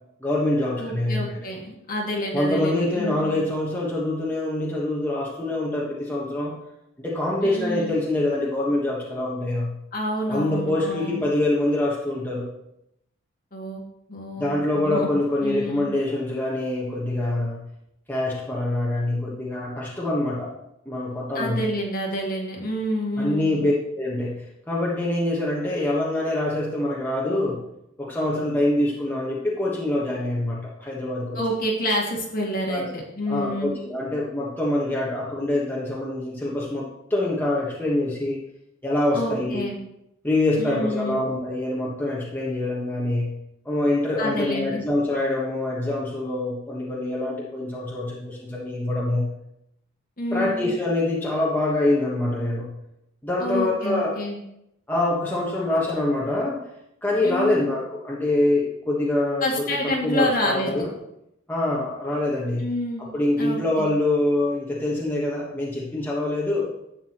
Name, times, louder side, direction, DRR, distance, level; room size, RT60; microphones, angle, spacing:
voice 1, 0.2-1.4 2.3-6.6 7.0-9.8 10.3-12.5 14.4-17.6 18.1-20.6 20.9-21.6 23.2-27.6 28.0-31.4 32.7-32.9 33.3-38.4 38.8-39.6 40.2-43.4 43.6-49.3 50.3-52.7 53.2-54.2 54.9-56.6 57.0-60.9 61.5-62.7 63.0-66.7, left 1 dB, 10° left, -5 dB, 1.2 m, -25 dB
voice 2, 0.8-3.4 7.4-8.0 9.9-11.2 13.5-13.8 14.1-15.1 15.4-15.9 21.3-23.6 31.3-33.8 39.1-39.8 40.6-41.2 44.2-44.8 50.2-50.7 53.4-54.4 57.2-57.7 59.4-60.9 62.6-63.1 63.4-63.9, equal, 40° left, -2 dB, 1.9 m, -28 dB
11.5 x 8.3 x 3.0 m, 0.81 s
head